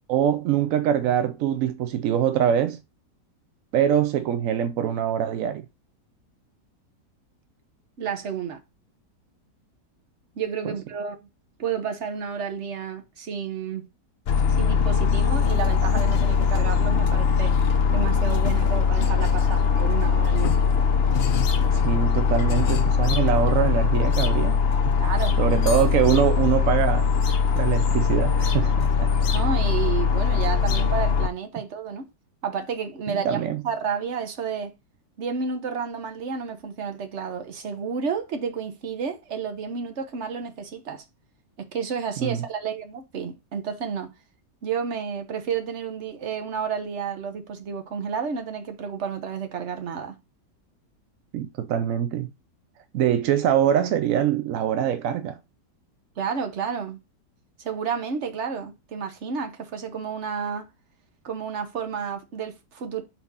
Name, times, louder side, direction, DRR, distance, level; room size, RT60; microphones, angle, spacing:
voice 1, 0.1-2.8 3.7-5.6 10.6-10.7 21.7-24.6 24.9-25.0 25.4-29.1 33.1-33.6 42.2-42.4 51.3-52.3 52.9-55.4, right 9 dB, 75° right, 0.7 m, -24 dB
voice 2, 8.0-8.6 10.4-11.2 11.6-13.9 14.5-17.6 17.9-20.6 25.0-25.4 29.3-32.1 32.4-33.4 33.6-34.7 35.2-41.0 41.6-44.1 44.6-50.1 56.2-57.0 57.6-60.7 61.2-63.0, right 6 dB, 45° right, 1.1 m, -31 dB
sound 1, 14.3-31.3, left 6 dB, 70° left, 0.5 m, -21 dB
4.4 x 4.2 x 5.4 m
omnidirectional pair, 1.9 m